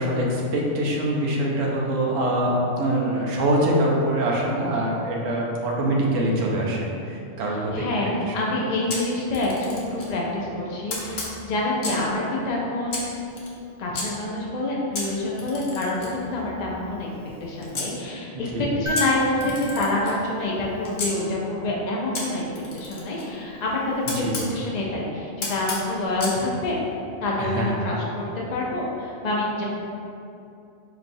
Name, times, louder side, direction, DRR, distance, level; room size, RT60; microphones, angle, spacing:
voice 1, 0.0-7.8 8.3-8.5 18.3-18.7 24.2-24.4 27.4-27.7, right 1 dB, 75° right, -2 dB, 1.0 m, -24 dB
voice 2, 7.7-13.4 13.8-17.1 17.4-18.5 18.8-22.4 22.7-24.2 24.5-26.8 27.2-28.2 28.5-29.6, left 2 dB, 85° left, -4 dB, 0.3 m, -27 dB
Camera, 8.9-10.1 10.9-12.1 12.9-14.1 14.9-17.9 18.9-21.1 22.1-24.5 25.4-26.4, left 2 dB, 60° left, 0.9 m, -34 dB
sound 1, 18.9-21.2 23.2-23.3, left 3 dB, 55° right, 0.8 m, -32 dB
4.3 x 3.0 x 2.6 m, 2.6 s
omnidirectional pair, 1.4 m